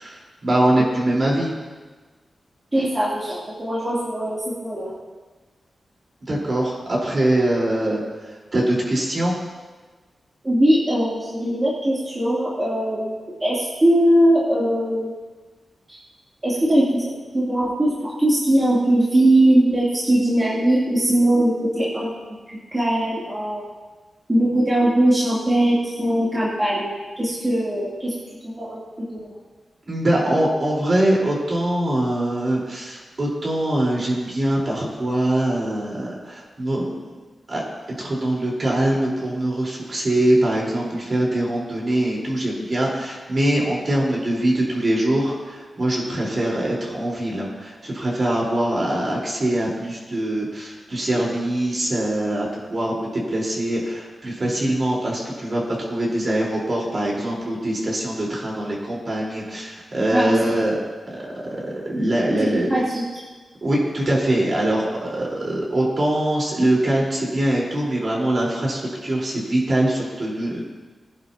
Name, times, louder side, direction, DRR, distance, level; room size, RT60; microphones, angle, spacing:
voice 1, 0.0-1.5 6.3-8.0 8.5-9.4 29.9-37.0 37.5-37.6 38.0-60.8 61.6-62.7 63.6-70.6, right 1 dB, 40° right, -4 dB, 4.5 m, -23 dB
voice 2, 2.7-4.9 10.4-13.1 13.4-15.1 15.9-16.0 16.4-22.1 22.7-23.6 24.3-26.9 27.2-28.1 28.6-29.3 44.2-44.3 60.1-60.3 62.4-63.0, right 1 dB, 20° right, -9 dB, 3.2 m, -20 dB
22.0 x 10.5 x 3.0 m, 1.3 s
wide cardioid pair, 120°, 0 cm